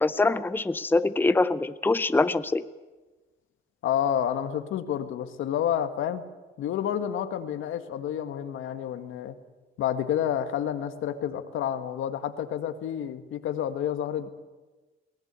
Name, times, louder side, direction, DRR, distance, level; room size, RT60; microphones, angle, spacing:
voice 1, 0.0-2.6, left 3 dB, 10° left, 14 dB, 0.7 m, -24 dB
voice 2, 3.8-6.2 6.6-9.4 9.8-14.3, left 9 dB, 80° left, 9 dB, 1.6 m, -29 dB
21.5 x 17.5 x 8.2 m, 1.2 s
cardioid pair, 90°, 20 cm